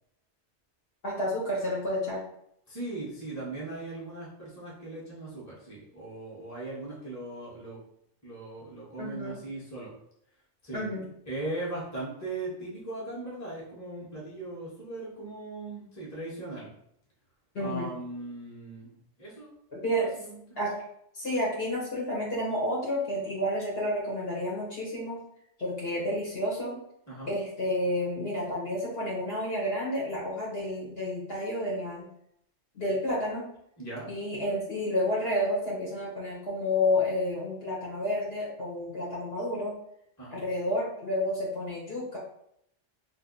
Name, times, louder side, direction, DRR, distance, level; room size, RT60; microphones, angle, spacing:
voice 1, 1.0-2.2 9.0-9.4 10.7-11.0 17.5-17.9 19.7-20.1 20.6-20.8 21.1-25.2 25.6-26.8 27.3-32.1 32.7-33.5 34.1-39.8 40.3-42.2, left 1 dB, 55° left, -5 dB, 1.1 m, -30 dB
voice 2, 2.7-7.8 8.2-9.9 10.6-10.8 11.3-16.7 17.6-19.5 19.9-20.6 27.1-27.3 33.8-34.1 40.2-40.5, right 2 dB, 15° left, -6 dB, 1.0 m, -39 dB
2.6 x 2.5 x 3.8 m, 0.72 s
omnidirectional pair, 1.3 m